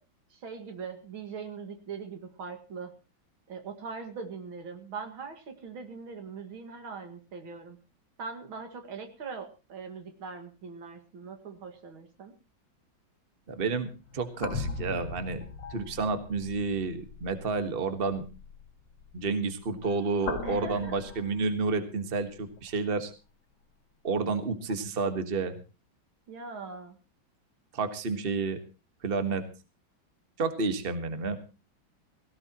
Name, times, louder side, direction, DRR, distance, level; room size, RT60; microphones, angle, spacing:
voice 1, 0.3-2.9 3.5-7.8 8.2-12.3 20.4-20.9 26.3-27.0, right 5 dB, 80° right, 7 dB, 2.8 m, -41 dB
voice 2, 13.5-15.4 15.7-18.3 19.1-23.1 24.0-25.6 27.7-28.6 29.0-29.4 30.4-31.4, right 4 dB, 30° right, 9 dB, 1.5 m, -30 dB
sound 1, 13.7-22.0 22.6-22.7 24.7-24.8, left 5 dB, 65° left, 2.2 m, -40 dB
17.5 x 17.0 x 3.0 m, 0.32 s
omnidirectional pair, 2.2 m